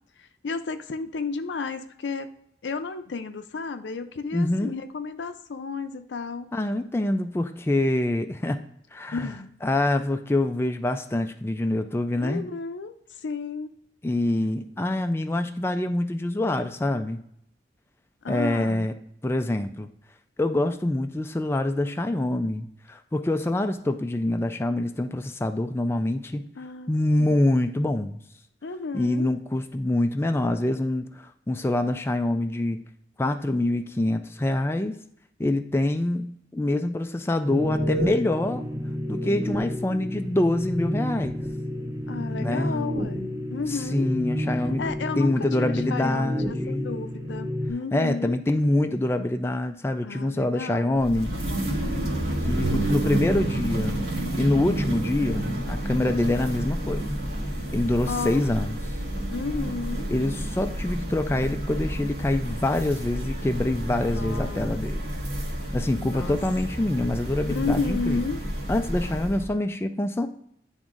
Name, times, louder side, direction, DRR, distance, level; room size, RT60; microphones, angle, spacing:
voice 1, 0.2-2.3 2.6-6.5 9.1-9.5 12.2-13.7 18.2-18.9 26.6-26.9 28.6-29.3 42.1-44.1 44.8-48.4 50.0-51.0 58.1-58.4 59.3-60.1 64.1-64.9 66.0-66.4 67.5-68.4, left 4 dB, 90° left, 9 dB, 0.5 m, -32 dB
voice 2, 4.3-4.7 6.5-8.6 8.9-9.3 9.6-12.5 14.0-17.2 18.3-18.9 19.2-19.9 20.4-26.4 26.9-28.2 28.9-32.8 33.2-35.0 35.4-38.6 39.1-41.4 42.4-42.8 43.7-44.8 45.2-46.9 47.9-51.3 52.4-54.1 54.4-57.0 57.7-58.8 60.1-65.0 65.7-68.2 68.7-70.3, left 1 dB, 15° left, 6 dB, 0.3 m, -25 dB
sound 1, 37.5-47.7, equal, 20° right, 1.2 m, -30 dB
sound 2, 51.0-69.5, right 1 dB, 70° right, 1.6 m, -30 dB
10.5 x 3.6 x 2.5 m, 0.71 s
head